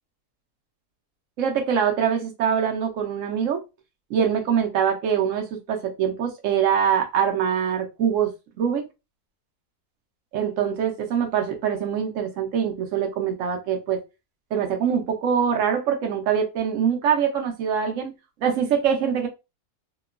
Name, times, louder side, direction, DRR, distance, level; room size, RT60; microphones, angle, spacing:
voice 1, 1.4-3.6 4.1-8.3 8.6-8.8 10.3-14.0 14.5-18.1 18.4-19.3, right 8 dB, 70° right, 4 dB, 0.8 m, -23 dB
2.9 x 2.2 x 2.3 m, 0.26 s
omnidirectional pair, 1.7 m